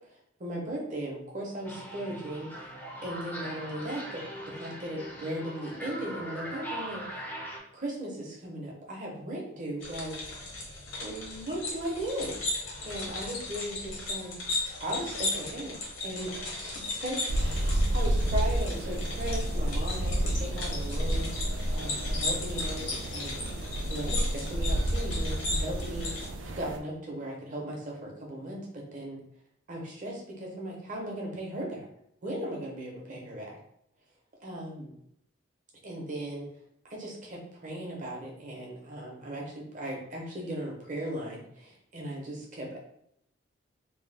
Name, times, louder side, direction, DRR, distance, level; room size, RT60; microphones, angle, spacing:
voice 1, 0.4-2.5 3.0-7.2 7.7-10.4 11.0-12.3 12.8-14.4 14.8-15.8 16.0-23.3 23.9-29.2 29.7-31.8 32.2-33.6 34.4-34.9 35.8-36.5 36.9-42.8, right 1 dB, 40° right, -2 dB, 0.8 m, -37 dB
sound 1, 1.6-7.6, right 1 dB, 10° left, 0.4 m, -40 dB
sound 2, 9.8-26.3, left 2 dB, 85° left, 1.0 m, -36 dB
sound 3, 17.3-26.8, right 1 dB, 70° right, 0.4 m, -30 dB
3.0 x 2.1 x 3.3 m, 0.73 s
head